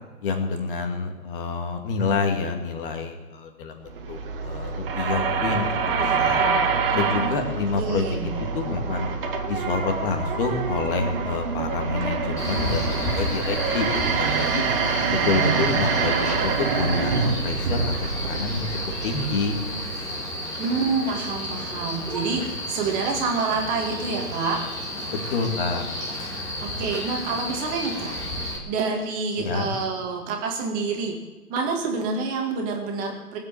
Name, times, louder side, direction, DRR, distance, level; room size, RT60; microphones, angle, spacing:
voice 1, 0.2-6.4 6.9-8.1 8.5-9.1 9.5-14.6 15.1-17.9 18.2-18.7 19.0-19.6 25.1-25.8 29.4-29.7, left 4 dB, 35° left, 4 dB, 2.4 m, -28 dB
sound 1, 3.9-20.2, right 5 dB, 35° right, 1.8 m, -26 dB
voice 2, 7.7-8.3 20.6-24.6 26.6-28.1 28.7-31.2 31.5-33.4, right 4 dB, 15° right, 1 dB, 2.1 m, -27 dB
Male speech man speaking, 12.4-28.6, left 1 dB, 5° left, 1.9 m, -32 dB
19.0 x 7.8 x 8.7 m, 1.3 s
hypercardioid pair, 150°, 47 cm